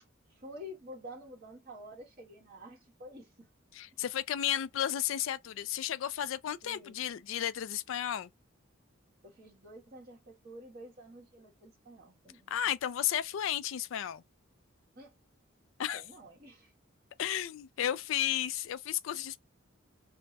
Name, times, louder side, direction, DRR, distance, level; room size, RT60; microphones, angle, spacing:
voice 1, 0.3-3.5 3.9-4.0 6.6-7.0 9.2-12.5 14.9-15.1 15.9-16.7, equal, 45° right, 1.4 m, -49 dB
voice 2, 3.7-8.3 12.5-14.2 15.8-16.0 17.2-19.4, left 10 dB, 70° left, 0.3 m, -33 dB
3.3 x 2.1 x 2.7 m
head